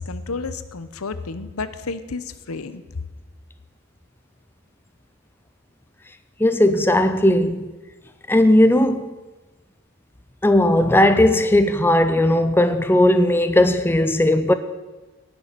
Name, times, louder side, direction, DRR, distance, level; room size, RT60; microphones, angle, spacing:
voice 1, 0.0-2.8, left 4 dB, 85° left, 0.9 m, -31 dB
voice 2, 6.4-7.7 8.3-9.1 10.4-14.5, left 1 dB, 10° left, 0.5 m, -17 dB
18.5 x 6.9 x 6.8 m
head